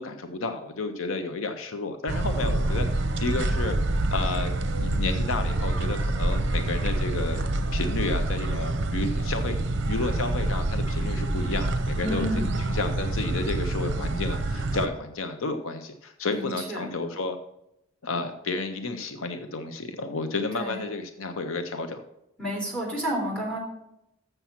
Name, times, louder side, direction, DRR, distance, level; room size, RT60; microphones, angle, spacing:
voice 1, 0.0-3.8 4.1-4.5 4.8-7.4 7.7-12.3 12.6-17.4 18.0-22.0, left 3 dB, 70° left, 7 dB, 0.7 m, -31 dB
sound 1, 2.1-14.9, right 2 dB, 55° right, 0.7 m, -27 dB
voice 2, 12.0-12.6 16.3-17.0 20.5-20.8 22.4-23.6, equal, 5° left, -2 dB, 3.8 m, -30 dB
7.2 x 6.7 x 5.8 m, 0.83 s
head